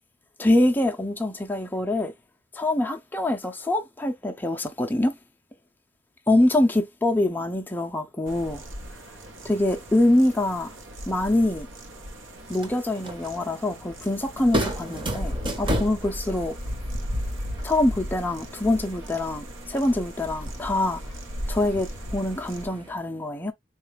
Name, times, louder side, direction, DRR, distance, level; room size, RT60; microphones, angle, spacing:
voice 1, 0.4-2.1 2.5-5.1 6.3-8.6 9.4-10.7 11.1-11.7 12.5-16.6 17.6-21.0 21.5-23.5, left 1 dB, 10° left, 0.4 m, -24 dB
sound 1, 8.3-22.7, equal, 85° right, 0.8 m, -36 dB
sound 2, 12.4-22.9, right 1 dB, 25° right, 0.8 m, -35 dB
3.8 x 2.3 x 3.2 m
head